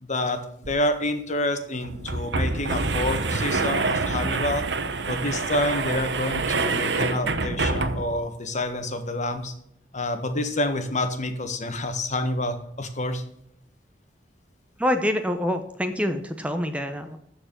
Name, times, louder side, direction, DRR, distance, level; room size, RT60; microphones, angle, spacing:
voice 1, 0.0-4.7 5.1-9.5 9.9-13.2, left 1 dB, 40° left, 7 dB, 1.4 m, -28 dB
sound 1, 0.6-0.7 1.0-1.1 1.8-8.2, right 3 dB, 75° right, 1.0 m, -26 dB
voice 2, 14.8-17.2, left 1 dB, 5° right, 7 dB, 0.8 m, -26 dB
13.5 x 4.7 x 7.4 m, 0.71 s
head